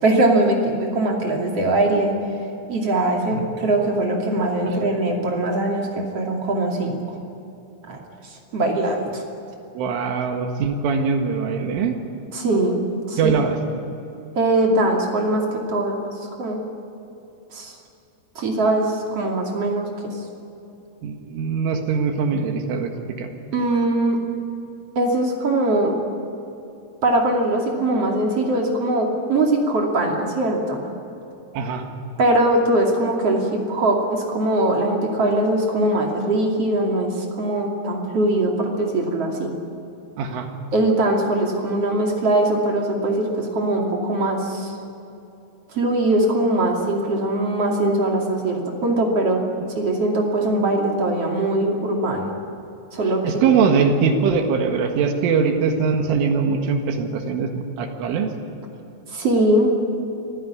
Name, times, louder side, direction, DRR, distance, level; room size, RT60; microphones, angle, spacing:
voice 1, 0.0-2.1 2.7-7.0 7.9-8.0 8.5-9.2 12.3-12.8 13.1-13.3 14.3-16.1 16.4-16.6 17.5-17.7 18.4-19.9 23.5-24.2 24.9-26.0 27.0-30.9 32.2-39.5 40.7-44.7 45.7-49.4 49.7-52.3 52.9-53.5 59.1-59.7, right 1 dB, 40° right, 0 dB, 2.8 m, -21 dB
voice 2, 9.7-12.0 13.2-13.6 21.0-22.9 23.2-23.3 31.5-31.9 40.2-40.5 53.2-58.3, right 5 dB, 80° right, 4 dB, 4.2 m, -22 dB
25.0 x 15.5 x 9.8 m, 2.8 s
omnidirectional pair, 5.7 m